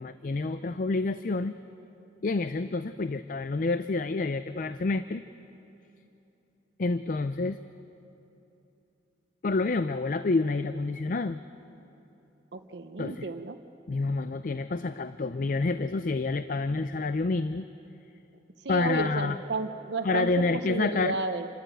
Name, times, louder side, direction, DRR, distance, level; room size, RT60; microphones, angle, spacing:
voice 1, 0.0-1.6 2.2-5.2 6.8-7.6 9.4-11.4 13.0-13.3 13.9-17.6 18.7-19.4 20.0-21.2, left 3 dB, 45° left, 12 dB, 0.4 m, -28 dB
voice 2, 12.5-13.6 18.6-20.3 20.7-21.5, right 3 dB, 70° right, 8 dB, 0.8 m, -32 dB
27.0 x 13.0 x 9.1 m, 3.0 s
head